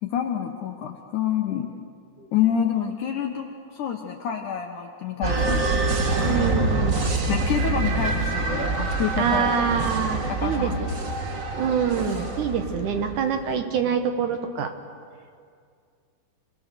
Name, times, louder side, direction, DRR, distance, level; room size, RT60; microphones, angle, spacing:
voice 1, 0.0-1.7 2.3-5.7 7.3-9.5 10.3-10.9, left 9 dB, 65° left, 3 dB, 2.2 m, -27 dB
sound 1, 5.2-13.4, right 3 dB, 80° right, 0.7 m, -26 dB
voice 2, 6.2-7.1 9.2-11.1 11.6-14.7, right 7 dB, 60° right, 6 dB, 2.4 m, -26 dB
27.5 x 20.0 x 6.9 m, 2.2 s
omnidirectional pair, 4.5 m